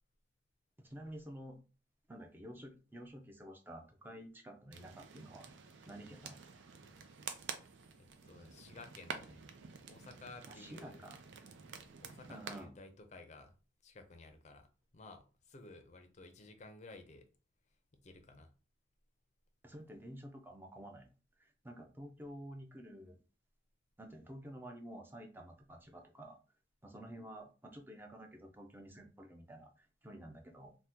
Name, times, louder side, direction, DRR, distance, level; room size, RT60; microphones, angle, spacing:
voice 1, 0.8-1.6 2.1-5.5 5.9-6.4 10.5-11.2 12.3-12.7 19.6-21.1 21.4-23.2 24.0-26.4 26.8-30.8, right 1 dB, 10° right, 0.4 m, -50 dB
sound 1, 4.7-12.6, right 6 dB, 85° right, 0.5 m, -49 dB
voice 2, 8.0-9.5 9.8-11.0 12.0-13.6 13.8-14.7 14.9-17.3 18.0-18.5, left 3 dB, 40° left, 0.5 m, -54 dB
2.8 x 2.1 x 3.5 m
head